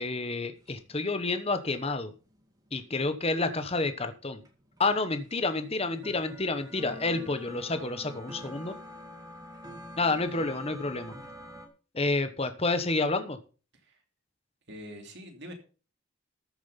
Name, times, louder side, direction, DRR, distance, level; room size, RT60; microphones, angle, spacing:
voice 1, 0.0-2.1 2.7-4.4 4.8-8.8 10.0-11.1 11.9-13.4, left 3 dB, 30° left, 9 dB, 1.1 m, -29 dB
sound 1, 0.6-3.9 4.2-11.7, equal, 15° right, 2.2 m, -46 dB
voice 2, 14.7-15.5, equal, 55° right, 4 dB, 3.0 m, -44 dB
13.5 x 7.3 x 5.7 m, 0.36 s
head